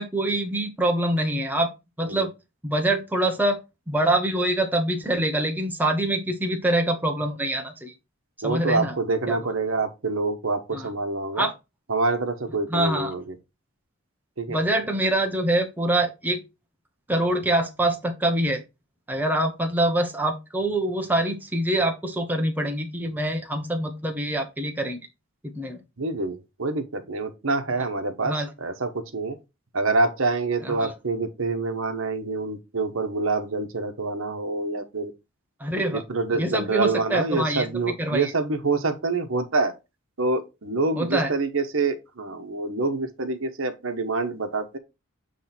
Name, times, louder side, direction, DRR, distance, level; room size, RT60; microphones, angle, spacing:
voice 1, 0.0-1.7 2.0-2.3 2.6-3.6 3.9-7.9 8.4-9.0 9.3-9.4 10.7-10.9 11.3-11.5 12.7-13.1 14.5-16.4 17.1-18.6 19.1-25.0 25.4-25.8 28.2-28.5 30.6-30.9 35.6-36.0 36.3-38.3 41.0-41.3, right 1 dB, 10° right, 1.0 m, -25 dB
voice 2, 8.4-11.5 11.9-13.2 14.4-14.6 26.0-29.4 29.7-35.1 35.7-39.7 40.2-44.8, right 3 dB, 70° right, 1.1 m, -26 dB
7.7 x 3.2 x 4.2 m
head